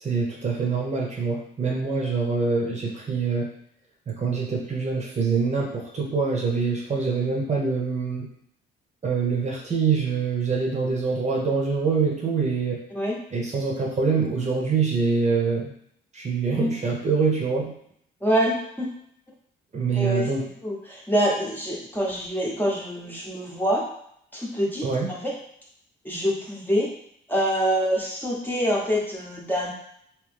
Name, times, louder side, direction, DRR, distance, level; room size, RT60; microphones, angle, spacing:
voice 1, 0.0-3.5 4.1-8.3 9.0-12.8 13.3-15.7 16.1-17.7 19.7-20.4 24.8-25.1, right 5 dB, 35° right, -2 dB, 1.0 m, -25 dB
voice 2, 18.2-18.9 20.0-20.3 20.6-23.8 24.3-25.3 26.0-26.9 27.3-29.7, equal, 10° left, -4 dB, 1.1 m, -25 dB
3.2 x 3.1 x 3.5 m, 0.69 s
cardioid pair, 90°, 20 cm